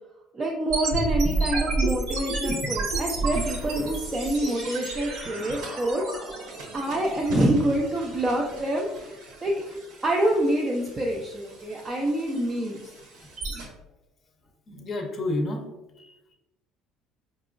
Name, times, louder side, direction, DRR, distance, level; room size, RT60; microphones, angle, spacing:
voice 1, 0.3-6.0 6.3-6.4 6.7-8.9 9.4-9.7 10.0-12.9, right 1 dB, 20° right, -1 dB, 0.4 m, -26 dB
sound 1, 0.7-13.7, right 2 dB, 80° right, 1.1 m, -32 dB
sound 2, 3.3-8.6, right 3 dB, 45° right, 0.8 m, -44 dB
voice 2, 14.7-15.7 16.0-16.3, left 2 dB, 30° left, 2 dB, 0.6 m, -30 dB
4.6 x 2.8 x 2.4 m, 1.0 s
cardioid pair, 160°, 0 cm